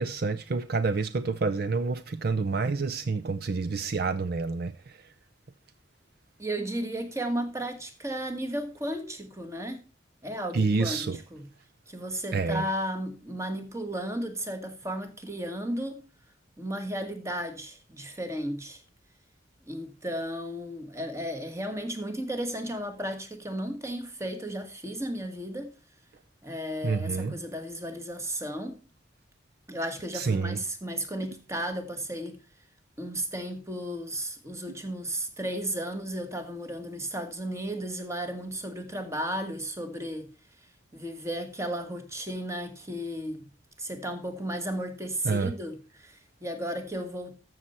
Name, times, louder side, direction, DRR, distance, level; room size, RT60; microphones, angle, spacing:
voice 1, 0.0-5.0 10.5-11.2 12.3-12.6 26.8-27.4 30.1-30.6 45.2-45.5, right 4 dB, 55° right, 0.5 m, -28 dB
voice 2, 6.4-9.8 10.2-11.5 11.9-16.0 16.6-18.8 19.7-25.7 26.4-28.8 29.7-32.4 33.0-40.3 40.9-43.5 43.8-47.3, right 1 dB, 15° right, 1.4 m, -34 dB
13.5 x 6.6 x 4.3 m
head